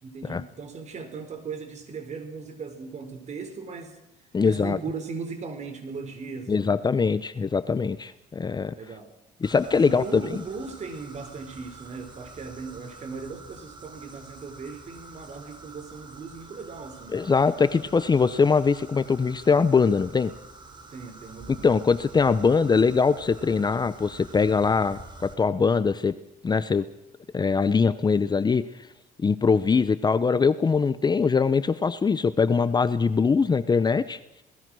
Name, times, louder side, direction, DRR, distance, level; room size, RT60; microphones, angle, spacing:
voice 1, 0.0-4.0 4.4-6.8 8.7-9.1 9.7-17.2 20.9-21.7, right 4 dB, 45° right, 9 dB, 4.2 m, -38 dB
voice 2, 4.3-4.8 6.5-8.7 9.4-10.4 17.1-20.3 21.6-26.1 26.4-26.9 27.3-28.6 29.2-34.2, left 5 dB, 25° left, 14 dB, 0.8 m, -22 dB
sound 1, 9.4-25.3, right 3 dB, 25° right, 4.0 m, -47 dB
27.5 x 19.5 x 6.3 m, 0.86 s
cardioid pair, 110°, 17 cm